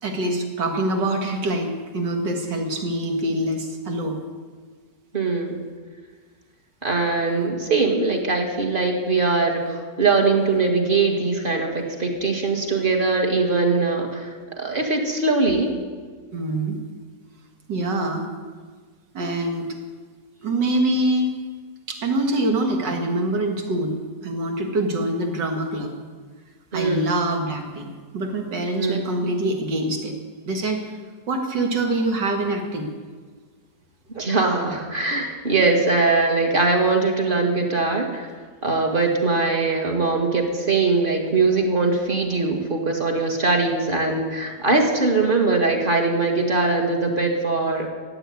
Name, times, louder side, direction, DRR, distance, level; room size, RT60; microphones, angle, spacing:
voice 1, 0.0-4.2 16.3-16.8 17.7-18.3 19.1-19.7 20.4-21.3 21.9-24.0 24.2-25.9 26.7-30.1 30.5-30.8 31.3-32.9, right 1 dB, 80° right, 3 dB, 2.6 m, -24 dB
voice 2, 5.1-5.6 6.8-14.3 14.6-15.7 26.7-27.1 28.8-29.1 34.1-38.3 38.6-47.9, right 3 dB, 30° right, 2 dB, 2.0 m, -21 dB
15.0 x 8.1 x 9.6 m, 1.5 s
omnidirectional pair, 1.9 m